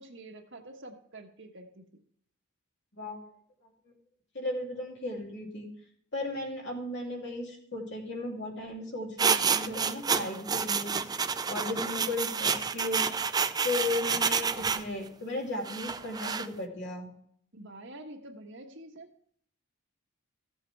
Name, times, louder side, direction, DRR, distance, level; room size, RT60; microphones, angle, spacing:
voice 1, 0.0-1.8 17.5-19.1, right 1 dB, 60° right, 3 dB, 1.4 m, -47 dB
voice 2, 4.3-5.7 6.1-11.0 11.5-13.1 13.6-17.1, left 2 dB, 55° left, 0 dB, 2.8 m, -35 dB
sound 1, 9.2-14.8 15.6-16.5, right 6 dB, 20° right, 0.4 m, -29 dB
15.0 x 7.6 x 3.4 m, 0.66 s
head